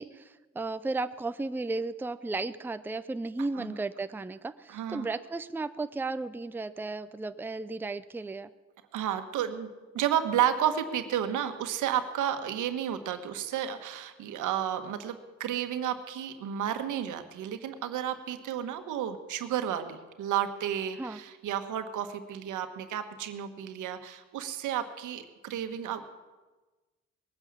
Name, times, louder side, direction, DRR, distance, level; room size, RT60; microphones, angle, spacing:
voice 1, 0.0-8.5 21.0-21.2, right 3 dB, 5° right, 11 dB, 0.5 m, -34 dB
voice 2, 4.7-5.1 8.9-26.0, right 10 dB, 85° right, 8 dB, 1.5 m, -32 dB
20.5 x 9.6 x 7.4 m, 1.2 s
cardioid pair, 90°, 30 cm